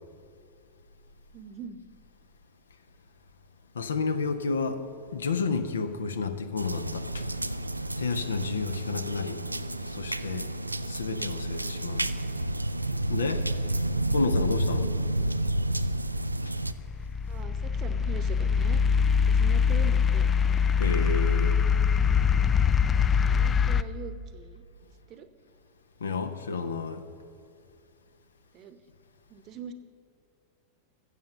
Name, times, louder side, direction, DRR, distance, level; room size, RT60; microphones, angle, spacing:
voice 1, 1.3-1.8 17.3-18.8 19.3-20.2 23.2-24.6 25.1-25.3 28.5-28.8 29.3-29.7, right 6 dB, 35° right, 0.9 m, -42 dB
voice 2, 3.7-4.8 5.1-7.3 8.0-9.4 9.9-10.5 10.9-12.1 13.1-13.4 14.1-15.4 20.8-21.6 26.0-27.0, left 4 dB, 70° left, 0.7 m, -31 dB
sound 1, 6.6-16.7, right 1 dB, 85° right, 0.4 m, -30 dB
sound 2, 16.6-23.8, left 6 dB, 20° left, 0.3 m, -23 dB
14.0 x 7.8 x 6.6 m
figure-of-eight pair, 90°, 0 cm